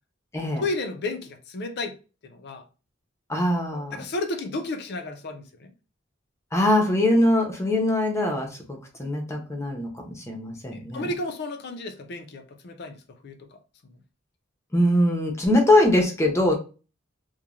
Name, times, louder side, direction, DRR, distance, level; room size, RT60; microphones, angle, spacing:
voice 1, 0.6-2.0 2.3-2.6 3.7-5.7 10.7-13.0 13.2-13.4 13.8-13.9, left 2 dB, 55° left, 0.5 m, -32 dB
voice 2, 3.3-4.0 6.5-11.1 14.7-16.6, left 1 dB, 15° left, 0.6 m, -22 dB
3.0 x 2.2 x 2.4 m
head